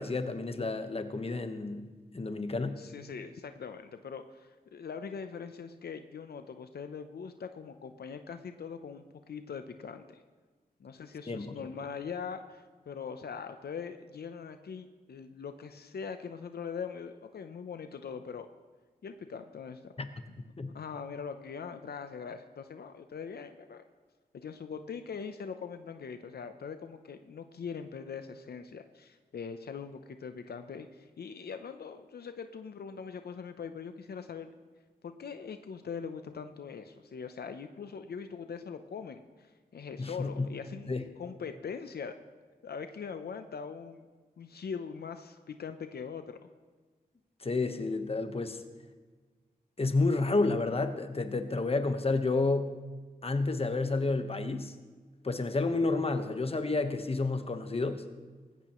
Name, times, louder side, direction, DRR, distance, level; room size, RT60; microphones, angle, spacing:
voice 1, 0.0-1.9 2.1-2.8 11.3-11.5 20.0-20.1 20.6-20.7 40.0-40.5 40.9-41.0 47.4-48.6 49.8-52.7 53.2-54.7 55.2-58.0, left 3 dB, 35° left, 8 dB, 1.2 m, -30 dB
voice 2, 2.8-10.2 10.8-18.5 19.0-19.9 20.6-23.8 24.3-34.5 35.0-42.1 42.6-44.1 44.4-46.4, left 6 dB, 80° left, 8 dB, 0.7 m, -42 dB
18.5 x 15.5 x 3.1 m, 1.4 s
cardioid pair, 60°, 16 cm